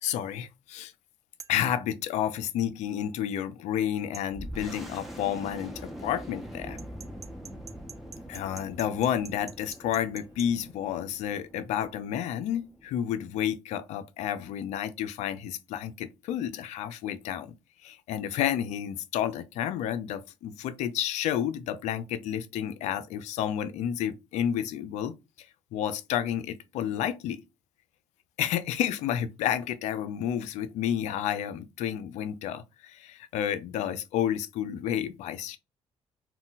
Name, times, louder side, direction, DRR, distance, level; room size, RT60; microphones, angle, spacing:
voice 1, 0.0-0.9 1.5-6.8 8.3-17.5 17.8-25.1 25.7-27.4 28.4-35.6, left 10 dB, 80° left, 0.4 m, -30 dB
sound 1, 1.4-1.6 4.1-4.3 6.8-10.5, right 6 dB, 30° right, 0.3 m, -46 dB
sound 2, 4.3-13.5, equal, ahead, 1.0 m, -44 dB
2.2 x 2.1 x 3.8 m
supercardioid pair, 60°, 12 cm